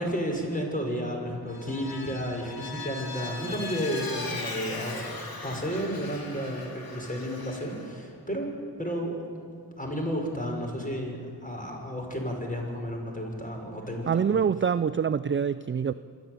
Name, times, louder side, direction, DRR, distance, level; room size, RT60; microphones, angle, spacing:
voice 1, 0.0-5.2 5.4-8.5 8.8-9.5 9.8-14.3, equal, 20° left, 1 dB, 5.9 m, -32 dB
Vehicle, 1.5-7.9, left 3 dB, 50° left, 3.2 m, -39 dB
voice 2, 14.1-15.9, right 7 dB, 30° right, 14 dB, 0.5 m, -25 dB
27.0 x 10.5 x 9.6 m, 2.4 s
cardioid pair, 60°, 45 cm